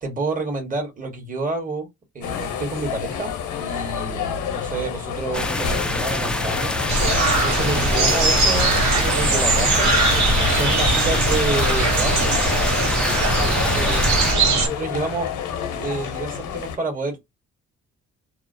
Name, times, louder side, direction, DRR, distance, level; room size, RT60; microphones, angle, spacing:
voice 1, 0.0-1.9 2.1-6.7 7.4-9.9 10.5-12.4 13.7-15.3 15.6-17.2, right 3 dB, 25° right, 1.2 m, -29 dB
sound 1, 2.2-16.8, left 8 dB, 90° left, 0.8 m, -29 dB
sound 2, 5.3-14.3, left 1 dB, 5° left, 0.3 m, -26 dB
sound 3, 6.9-14.7, right 2 dB, 70° right, 1.1 m, -20 dB
2.4 x 2.0 x 2.5 m
cardioid pair, 90°, 30 cm